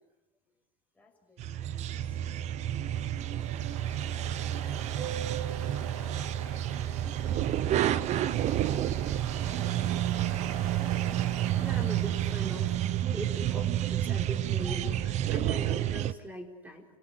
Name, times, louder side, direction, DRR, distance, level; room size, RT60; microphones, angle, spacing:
voice 1, 0.9-6.7 7.6-9.3, left 3 dB, 5° left, 1 dB, 6.4 m, -60 dB
sound 1, 1.4-16.1, right 12 dB, 40° right, 1.0 m, -30 dB
Ocean, 2.4-13.5, right 8 dB, 85° right, 3.6 m, -42 dB
voice 2, 11.6-12.8 13.1-16.9, equal, 10° right, 4 dB, 4.9 m, -41 dB
29.0 x 18.0 x 9.8 m, 0.97 s
supercardioid pair, 140°, 18 cm